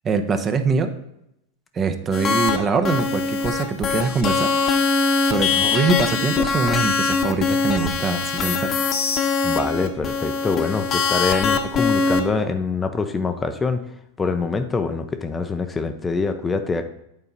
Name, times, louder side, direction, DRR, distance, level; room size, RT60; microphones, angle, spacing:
voice 1, 0.0-0.9 1.7-4.5 5.2-8.7, right 4 dB, 30° right, 8 dB, 0.8 m, -23 dB
sound 1, 2.1-2.6 2.8-12.2, left 4 dB, 35° left, 1.0 m, -22 dB
voice 2, 9.4-13.8 14.2-16.8, left 4 dB, 15° left, 7 dB, 0.6 m, -24 dB
8.4 x 3.9 x 5.4 m, 0.80 s
hypercardioid pair, 105°, 0 cm